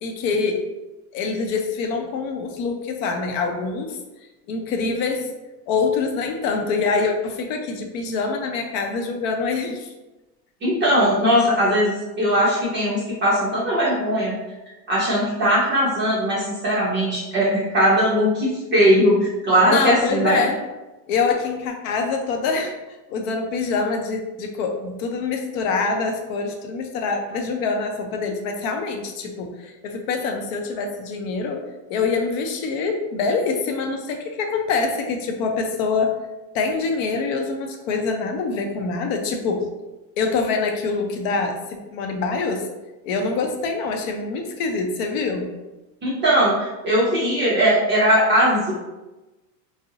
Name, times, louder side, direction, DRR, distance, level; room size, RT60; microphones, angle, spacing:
voice 1, 0.0-0.6 1.1-4.0 4.5-5.3 5.7-9.9 19.6-20.6 21.1-22.7 23.1-31.6 31.9-36.2 36.5-39.7 40.2-42.7 43.0-45.5, left 4 dB, 55° left, 3 dB, 0.5 m, -25 dB
voice 2, 10.6-14.4 14.9-19.2 19.4-20.4 46.0-46.5 46.8-48.7, equal, 25° right, -8 dB, 0.5 m, -19 dB
2.4 x 2.0 x 2.6 m, 1.1 s
supercardioid pair, 130°, 50 cm